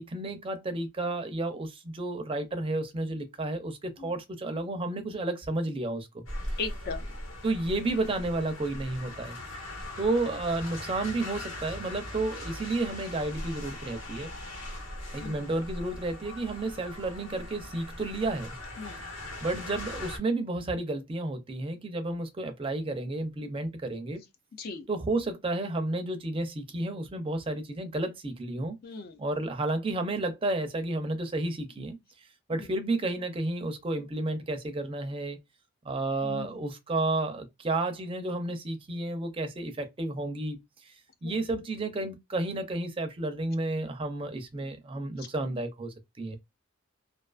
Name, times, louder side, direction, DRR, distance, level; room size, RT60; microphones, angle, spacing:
voice 1, 0.0-6.2 6.5-6.6 7.4-9.4 10.0-14.3 15.1-18.6 19.4-24.2 24.9-28.8 29.2-35.4 35.8-40.9 41.2-46.4, right 2 dB, 25° right, 0.4 m, -31 dB
sound 1, 6.3-20.2, left 1 dB, 80° left, 1.2 m, -40 dB
voice 2, 6.6-7.1 15.2-15.4 18.8-19.0 24.6-24.9 28.8-29.2 32.5-32.7 36.2-36.6 41.2-41.4 45.2-45.3, left 4 dB, 45° left, 0.4 m, -38 dB
2.4 x 2.3 x 2.3 m
head